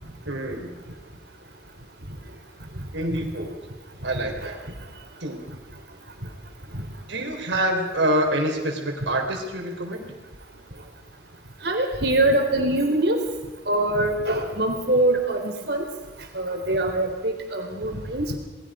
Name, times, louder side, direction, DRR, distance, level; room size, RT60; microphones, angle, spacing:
voice 1, 0.3-0.7 2.9-3.5 4.0-4.6 5.2-5.4 7.1-10.1, right 1 dB, 90° right, 2 dB, 4.0 m, -26 dB
voice 2, 11.6-13.2 13.7-15.8 16.3-18.4, right 1 dB, 65° right, 3 dB, 3.9 m, -23 dB
28.5 x 20.0 x 5.1 m, 1.1 s
head